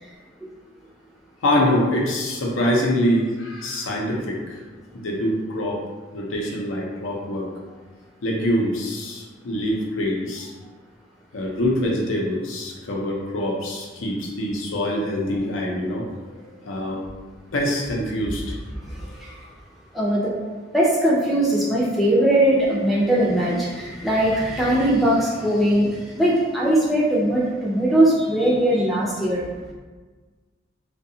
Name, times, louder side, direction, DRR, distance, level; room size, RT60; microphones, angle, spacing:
voice 1, 1.4-4.6 4.9-5.8 6.1-7.5 8.2-10.5 11.3-16.4 16.6-17.1 17.5-18.6, left 1 dB, 85° left, -2 dB, 0.6 m, -24 dB
voice 2, 19.9-20.3 20.7-25.9 26.2-29.4, right 1 dB, ahead, -7 dB, 0.3 m, -20 dB
2.7 x 2.2 x 2.6 m, 1.3 s
head